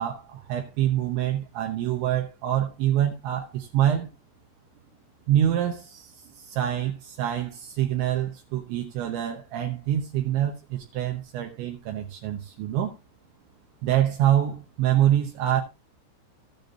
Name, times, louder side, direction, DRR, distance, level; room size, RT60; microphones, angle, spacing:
voice 1, 0.0-4.1 5.3-12.9 13.8-15.6, right 11 dB, 75° right, 3.2 m, -26 dB
14.0 x 9.2 x 2.5 m
omnidirectional pair, 5.6 m